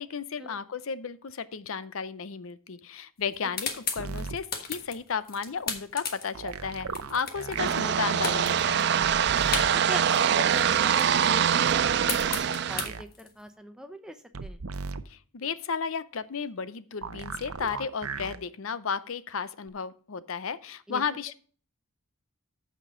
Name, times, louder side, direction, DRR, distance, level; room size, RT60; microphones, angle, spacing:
voice 1, 0.0-8.9 15.1-21.3, left 6 dB, 70° left, 15 dB, 0.6 m, -34 dB
sound 1, 3.2-7.9 8.2-10.3 10.5-13.5, left 6 dB, 40° left, 1.4 m, -35 dB
sound 2, 4.0-4.4 6.3-7.7 9.0-9.7 11.7-13.0 14.3-15.0 17.0-18.4 19.7-19.8, right 4 dB, 80° right, 0.7 m, -37 dB
sound 3, 7.6-12.9, right 8 dB, 50° right, 0.3 m, -24 dB
voice 2, 9.7-14.6 20.9-21.0, equal, 5° right, 7 dB, 0.7 m, -41 dB
14.5 x 5.2 x 3.7 m, 0.43 s
head